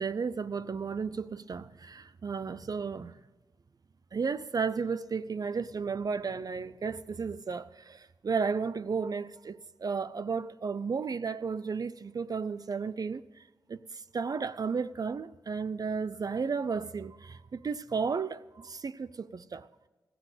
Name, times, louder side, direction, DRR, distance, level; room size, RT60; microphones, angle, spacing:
voice 1, 0.0-3.1 4.1-13.2 13.7-13.8 14.1-19.7, right 5 dB, 45° right, 0.4 m, -33 dB
16.0 x 7.7 x 8.0 m
wide cardioid pair, 80°, 9 cm